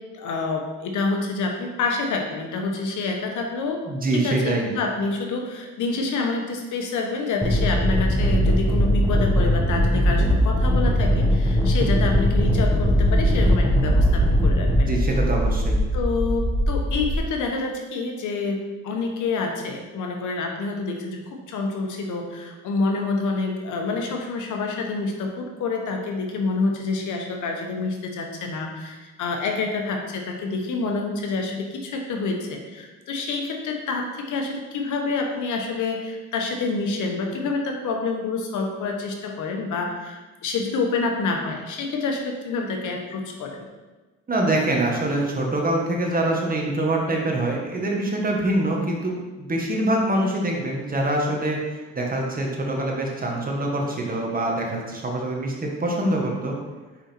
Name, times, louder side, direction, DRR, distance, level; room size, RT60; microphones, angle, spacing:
voice 1, 0.1-3.8 4.1-15.0 15.9-43.7, left 3 dB, 80° left, 2 dB, 1.1 m, -27 dB
voice 2, 3.9-4.7 14.8-15.8 44.3-51.6 51.9-56.5, right 1 dB, 30° right, -1 dB, 1.6 m, -24 dB
sound 1, 7.4-14.8, equal, 10° right, 1.3 m, -20 dB
sound 2, 12.1-17.2, left 1 dB, 35° left, 2.1 m, -23 dB
5.6 x 5.1 x 4.4 m, 1.2 s
cardioid pair, 90°, 30 cm